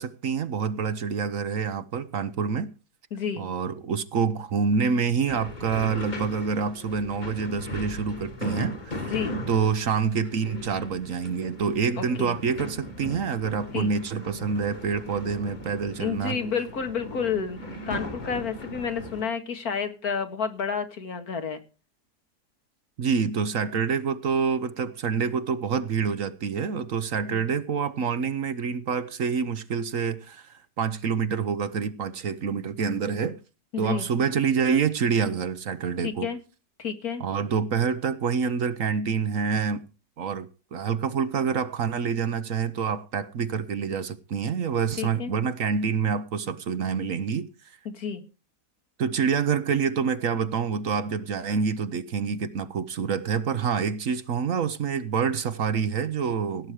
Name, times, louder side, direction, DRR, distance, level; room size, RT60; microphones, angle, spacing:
voice 1, 0.0-2.7 3.4-9.1 9.5-16.4 23.0-33.4 33.8-36.3 37.2-39.8 40.2-47.8 49.0-56.7, right 6 dB, 60° right, 1.2 m, -27 dB
voice 2, 3.1-3.5 9.1-9.4 12.0-12.4 13.7-13.9 16.0-17.6 17.8-21.6 27.3-27.5 33.7-34.1 36.0-36.4 36.8-37.2 45.0-45.3 47.9-48.2, left 6 dB, 65° left, 2.2 m, -30 dB
sound 1, 5.3-19.2, left 1 dB, 30° left, 1.8 m, -38 dB
17.0 x 9.3 x 4.9 m
omnidirectional pair, 1.7 m